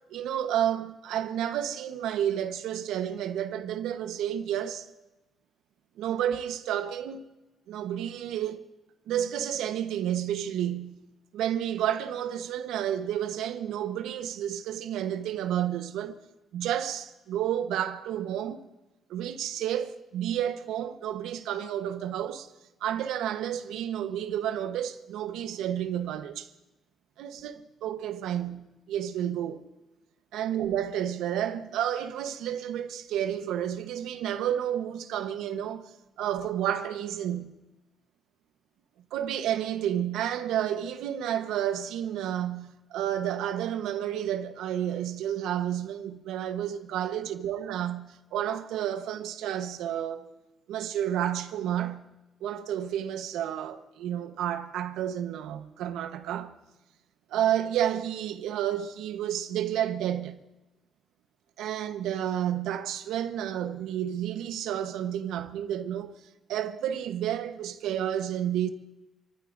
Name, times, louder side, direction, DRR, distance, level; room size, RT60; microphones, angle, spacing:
voice 1, 0.1-4.9 6.0-7.3 7.7-8.6 9.1-11.1 11.3-16.2 16.5-18.7 19.1-22.5 22.8-26.5 27.2-29.6 30.3-35.9 36.2-37.5 39.1-50.3 50.7-52.1 52.4-56.5 57.3-60.4 61.6-66.1 66.5-68.7, right 10 dB, 90° right, 1.1 m, -31 dB
28.5 x 14.5 x 2.6 m
cardioid pair, 90°, 0 cm